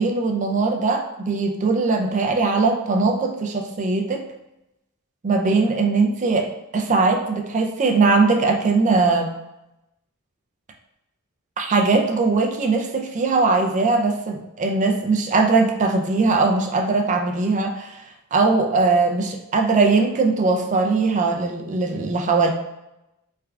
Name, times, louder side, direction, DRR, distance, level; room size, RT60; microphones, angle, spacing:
voice 1, 0.0-4.2 5.2-9.4 11.6-18.0 18.3-22.5, right 3 dB, 35° right, 3 dB, 0.4 m, -20 dB
3.3 x 2.3 x 3.5 m, 0.92 s
head